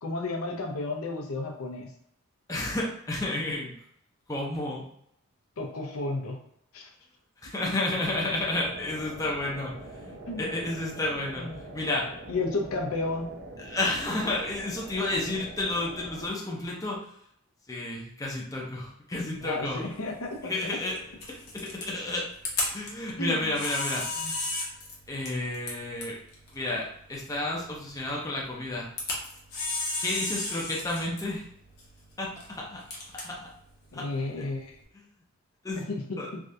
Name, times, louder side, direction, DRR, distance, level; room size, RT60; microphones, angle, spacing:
voice 1, 0.0-1.9 5.6-6.4 6.7-6.9 10.3-10.5 11.3-11.6 12.3-13.3 19.4-20.5 23.2-23.5 24.2-24.3 33.9-34.8 35.8-36.4, left 2 dB, 75° left, 1 dB, 0.6 m, -32 dB
voice 2, 2.5-3.8 4.3-4.8 7.4-11.5 11.7-12.1 13.7-17.0 17.7-19.9 20.4-21.0 21.3-22.3 22.7-24.1 25.1-26.2 26.5-28.9 30.0-31.4 32.2-32.8 33.2-33.5 33.9-34.0 35.6-35.8 36.2-36.3, left 2 dB, 15° left, -3 dB, 0.5 m, -31 dB
sound 1, 8.0-16.3, right 1 dB, 50° right, 0.5 m, -44 dB
Camera, 19.4-34.8, left 2 dB, 45° left, 0.8 m, -37 dB
3.4 x 2.4 x 2.6 m, 0.72 s
head